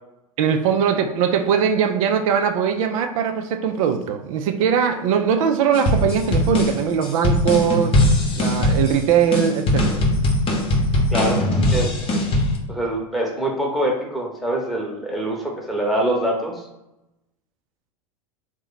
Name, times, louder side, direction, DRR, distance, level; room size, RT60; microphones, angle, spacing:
voice 1, 0.4-8.0 8.4-10.0, right 7 dB, 65° right, 6 dB, 0.5 m, -20 dB
sound 1, 5.7-12.6, left 1 dB, 30° left, 0.9 m, -20 dB
voice 2, 11.1-11.4 11.7-12.0 12.7-16.6, right 1 dB, ahead, -2 dB, 1.0 m, -24 dB
2.9 x 2.2 x 4.0 m, 0.92 s
hypercardioid pair, 95°, 19 cm